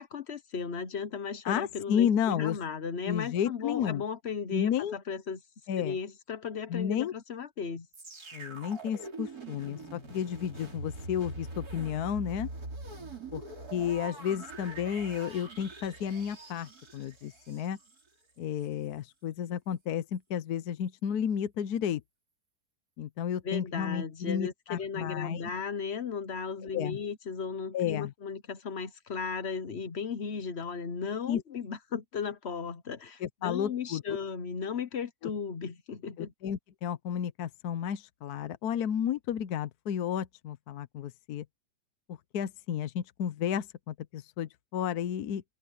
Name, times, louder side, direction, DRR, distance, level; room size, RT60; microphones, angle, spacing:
voice 1, 0.0-5.4 5.8-7.9 23.4-36.3, left 6 dB, 45° left, 1.0 m, -36 dB
voice 2, 1.4-2.6 3.0-4.0 4.5-5.0 5.7-6.0 6.7-7.1 8.3-12.5 13.3-13.4 13.7-17.8 18.4-22.0 23.0-25.5 26.7-27.0 27.7-28.1 31.3-31.4 33.2-34.2 36.2-41.4 42.1-45.4, left 9 dB, 65° left, 1.2 m, -32 dB
sound 1, 7.9-18.0 18.6-18.7, right 2 dB, 55° right, 4.2 m, -43 dB
open air
omnidirectional pair, 1.9 m